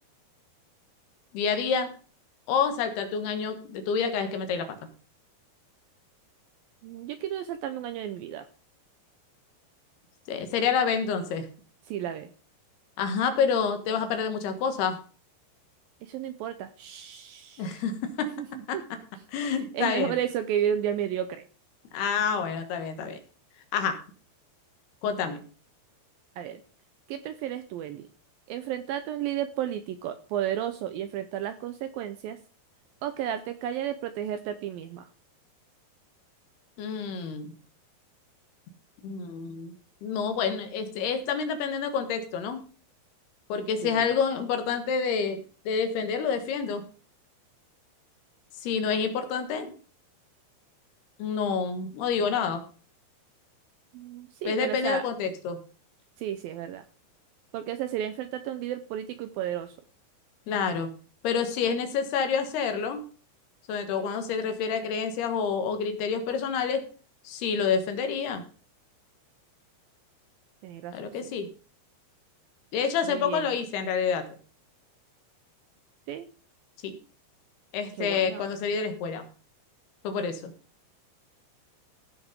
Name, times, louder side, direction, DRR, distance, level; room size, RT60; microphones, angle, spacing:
voice 1, 1.3-1.9 2.5-4.7 10.3-11.5 13.0-15.0 17.6-18.3 18.7-18.8 19.3-20.1 21.9-23.2 23.7-24.0 25.0-25.4 36.8-37.5 39.0-39.7 40.0-42.6 43.5-46.8 48.6-49.7 51.2-52.6 54.4-55.6 60.5-60.9 61.2-63.0 63.7-66.9 67.2-68.4 70.9-71.5 72.7-74.3 76.8-76.9 77.7-79.2 80.0-80.5, left 6 dB, 75° left, 8 dB, 3.4 m, -28 dB
voice 2, 6.8-8.5 11.9-12.3 16.0-17.8 18.4-18.8 19.4-21.4 26.4-26.6 27.1-28.1 28.5-32.4 33.0-35.1 43.8-44.1 53.9-55.1 56.2-56.8 57.5-59.8 70.6-71.1 73.0-73.5 76.1-76.3 78.0-78.5, right 10 dB, 80° right, 10 dB, 2.2 m, -33 dB
15.5 x 6.1 x 5.3 m, 0.40 s
omnidirectional pair, 4.8 m